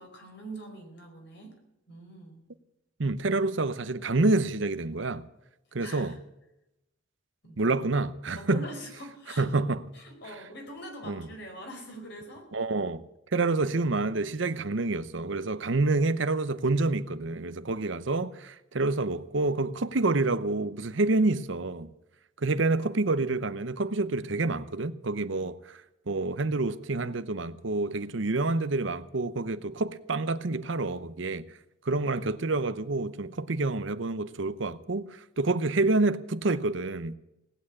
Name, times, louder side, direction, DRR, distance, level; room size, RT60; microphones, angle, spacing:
voice 1, 0.0-1.5 1.9-2.4 5.8-6.2 7.4-7.6 8.3-9.5 9.9-12.5, equal, 60° left, 4.8 m, -43 dB
voice 2, 3.0-5.2 5.7-6.1 7.6-8.6 9.4-9.8 11.1-11.2 12.5-13.0 13.3-21.9 22.4-31.4 31.8-37.2, right 3 dB, 65° right, 0.8 m, -28 dB
18.0 x 9.2 x 8.5 m
head